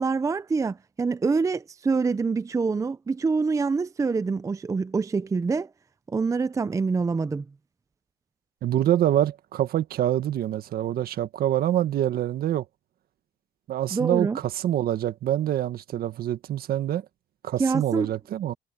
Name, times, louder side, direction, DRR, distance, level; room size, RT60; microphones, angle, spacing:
voice 1, 0.0-5.7 6.1-7.4 13.9-14.4 17.6-18.1, right 4 dB, 20° right, 0.5 m, -25 dB
voice 2, 8.6-12.6 13.7-17.0 17.4-18.5, right 12 dB, 65° right, 1.7 m, -25 dB
cardioid pair, 110°, 17 cm